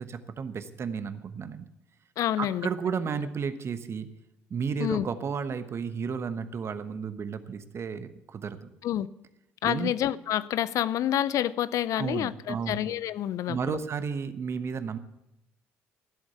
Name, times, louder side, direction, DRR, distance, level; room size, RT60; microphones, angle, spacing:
voice 1, 0.0-1.6 2.4-4.1 4.5-8.7 9.6-9.9 12.0-12.8 13.5-15.0, right 6 dB, 40° right, 11 dB, 1.1 m, -33 dB
voice 2, 2.2-2.7 4.8-5.1 8.8-9.1 9.6-13.8, left 12 dB, 55° left, 18 dB, 0.5 m, -28 dB
15.5 x 7.8 x 6.9 m, 0.84 s
hypercardioid pair, 50°, 6 cm